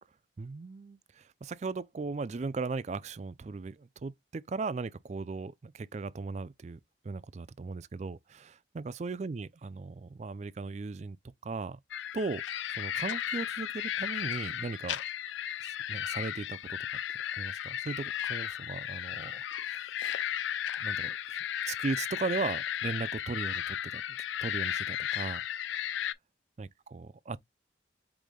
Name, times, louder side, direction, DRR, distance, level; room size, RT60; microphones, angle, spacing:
voice 1, 0.4-6.8 7.0-11.2 11.4-11.8 12.1-12.4 12.7-15.0 15.6-16.8 17.4-19.9 20.8-21.4 21.7-25.4 26.6-27.4, right 4 dB, 35° right, 0.3 m, -37 dB
sound 1, 11.9-26.1, left 10 dB, 80° left, 0.4 m, -35 dB
4.9 x 2.6 x 3.7 m
head